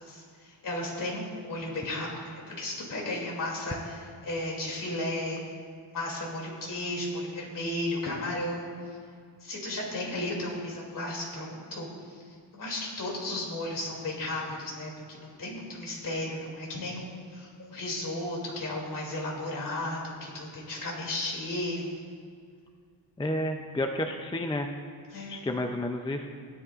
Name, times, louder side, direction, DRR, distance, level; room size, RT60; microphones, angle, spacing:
voice 1, 0.0-5.4 5.9-8.7 9.4-22.0 25.1-25.5, left 1 dB, 40° left, -2 dB, 2.7 m, -34 dB
voice 2, 23.2-24.7 25.3-26.3, left 1 dB, 10° left, 4 dB, 0.4 m, -30 dB
17.0 x 11.0 x 2.4 m, 2.3 s
wide cardioid pair, 140°, 47 cm